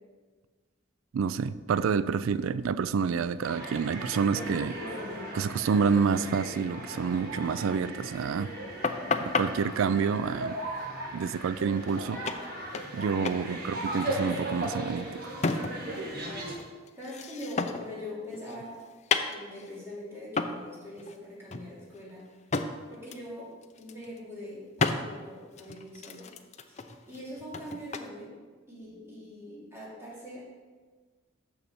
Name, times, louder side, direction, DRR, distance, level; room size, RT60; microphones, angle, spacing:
voice 1, 1.1-4.7 5.3-8.5 9.2-10.6 11.1-12.2 12.9-15.3, right 6 dB, 80° right, 16 dB, 0.3 m, -28 dB
sound 1, 3.4-16.5, right 1 dB, 45° right, 1.7 m, -37 dB
voice 2, 4.7-5.2 13.4-13.6 17.0-18.8 19.3-22.2 22.9-26.3 26.6-28.3 28.7-30.4, left 1 dB, 15° right, -7 dB, 2.9 m, -42 dB
sound 2, 8.8-9.5 11.6-11.7 11.9-12.0 12.3-13.0 13.3-13.5 13.7-16.0 16.3-18.0 18.3-19.8 20.4-20.6 21.0-21.2 21.5-22.7 23.1-23.3 23.6-24.2 24.8-25.0 25.5-28.1, left 4 dB, 35° left, 0.5 m, -32 dB
6.9 x 6.3 x 7.0 m, 1.4 s
head